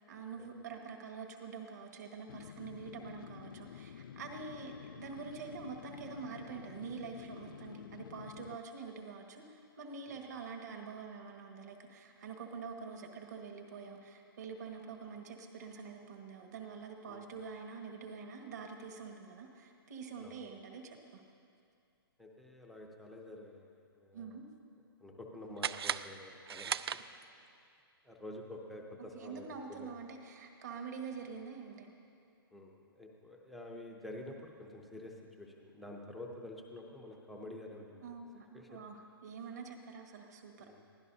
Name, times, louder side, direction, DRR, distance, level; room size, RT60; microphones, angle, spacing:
voice 1, 0.1-21.2 24.1-24.5 29.1-31.9 38.0-40.5, right 5 dB, 45° right, 3 dB, 1.7 m, -46 dB
sound 1, 2.3-8.6, left 8 dB, 60° left, 0.4 m, -50 dB
voice 2, 22.2-24.3 25.0-26.9 28.0-29.9 32.5-38.0 38.5-38.8 40.6-40.8, left 1 dB, ahead, -1 dB, 0.5 m, -49 dB
sound 2, 25.6-27.5, right 8 dB, 80° right, 0.5 m, -38 dB
23.0 x 16.5 x 2.7 m, 2.5 s
hypercardioid pair, 180°, 13 cm